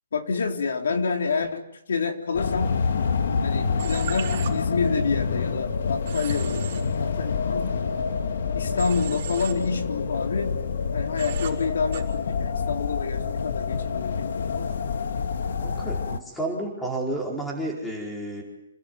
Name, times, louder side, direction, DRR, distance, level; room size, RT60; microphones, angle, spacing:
voice 1, 0.1-1.6 1.9-2.7 3.4-6.7 7.0-8.2 8.5-10.6 10.9-14.9, left 5 dB, 70° left, 4 dB, 3.8 m, -28 dB
sound 1, 2.3-16.2, left 5 dB, 55° left, 2.0 m, -27 dB
Human voice / Train, 3.8-4.5 6.1-6.8 8.8-9.5 11.2-11.5 11.9-12.0, right 10 dB, 30° right, 5.6 m, -36 dB
voice 2, 15.6-18.4, right 1 dB, 5° left, 0 dB, 4.5 m, -31 dB
27.5 x 19.0 x 9.5 m, 0.79 s
hypercardioid pair, 180°, 0 cm